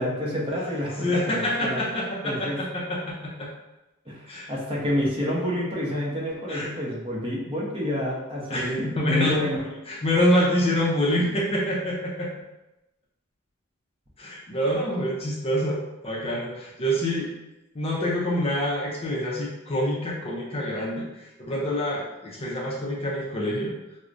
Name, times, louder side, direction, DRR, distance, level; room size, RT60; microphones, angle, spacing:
voice 1, 0.0-1.8 2.2-2.6 4.1-9.6, equal, 25° right, -5 dB, 0.8 m, -28 dB
voice 2, 1.0-3.5 4.3-4.5 6.5-6.7 8.5-9.5 9.9-12.3 14.2-17.3 17.7-23.7, equal, 30° left, -4 dB, 0.5 m, -26 dB
4.7 x 2.1 x 2.5 m, 0.95 s
head